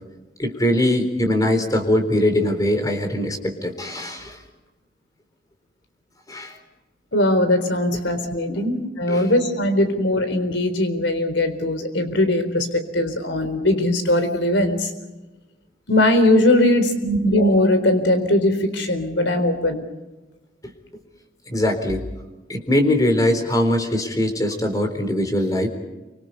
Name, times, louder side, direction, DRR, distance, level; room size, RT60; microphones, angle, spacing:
voice 1, 0.4-4.4 6.3-6.5 8.5-8.6 9.1-9.3 21.5-22.0 22.5-25.7, left 1 dB, 20° left, 5 dB, 3.9 m, -21 dB
voice 2, 7.1-14.9 15.9-19.8, left 1 dB, 75° left, 9 dB, 4.1 m, -20 dB
28.5 x 25.5 x 5.5 m, 1.1 s
head